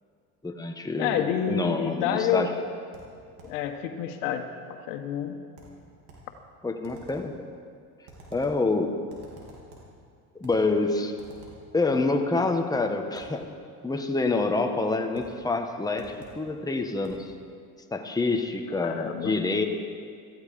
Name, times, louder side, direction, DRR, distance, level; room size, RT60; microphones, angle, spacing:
voice 1, 0.4-2.5 6.6-7.3 8.3-9.0 10.3-11.2 11.7-13.5 13.8-17.3 17.9-19.6, left 3 dB, 10° left, 4 dB, 1.4 m, -27 dB
voice 2, 1.0-2.5 3.4-5.4 18.8-19.4, left 9 dB, 75° left, 6 dB, 1.6 m, -29 dB
sound 1, 2.9-3.7 5.6-6.4 6.8-7.4 8.1-8.7 9.1-10.0 10.4-10.7 11.2-11.7 13.1-13.4 15.1-15.4 16.0-16.5 17.0-17.3, right 2 dB, 85° right, 4.0 m, -50 dB
17.0 x 14.5 x 5.4 m, 2.3 s
hypercardioid pair, 80°, 46 cm